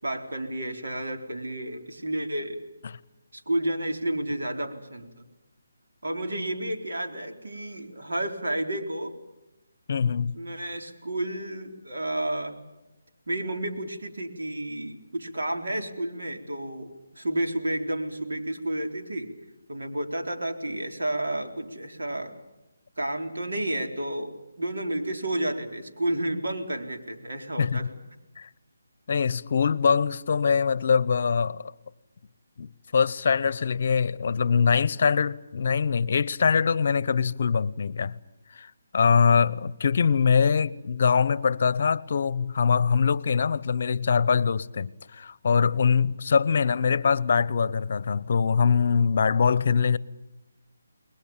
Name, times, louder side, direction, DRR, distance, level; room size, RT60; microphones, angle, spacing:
voice 1, 0.0-2.6 3.3-5.2 6.0-9.1 10.3-12.5 13.3-19.3 19.7-22.3 23.0-27.9, right 1 dB, 85° right, 4.2 m, -31 dB
voice 2, 9.9-10.3 27.6-27.9 28.4-28.5 29.1-31.7 32.6-38.2 38.5-50.0, left 6 dB, 50° left, 0.8 m, -23 dB
29.5 x 21.0 x 7.3 m
hypercardioid pair, 165°, 0 cm